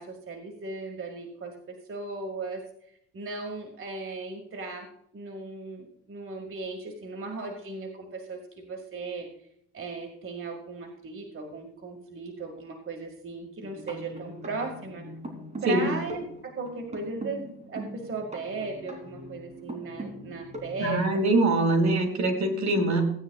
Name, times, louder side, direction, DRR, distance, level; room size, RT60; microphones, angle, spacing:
voice 1, 0.0-2.6 3.1-4.9 5.1-9.3 9.7-15.1 15.6-21.0, right 3 dB, 45° right, 2 dB, 2.0 m, -37 dB
sound 1, 13.6-20.9, right 1 dB, 25° right, 3.0 m, -42 dB
voice 2, 20.8-23.0, right 2 dB, 60° right, 5 dB, 2.3 m, -23 dB
16.5 x 9.4 x 2.4 m, 0.68 s
cardioid pair, 90°, 30 cm